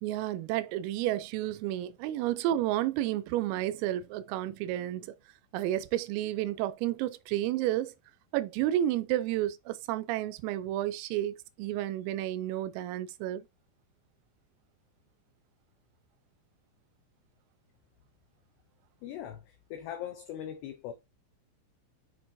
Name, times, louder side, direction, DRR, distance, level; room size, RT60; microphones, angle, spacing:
voice 1, 0.0-5.2 5.5-8.0 8.3-13.4, right 13 dB, 85° right, 3.4 m, -31 dB
voice 2, 19.0-20.9, left 10 dB, 80° left, 2.5 m, -40 dB
9.0 x 6.2 x 2.8 m
omnidirectional pair, 6.0 m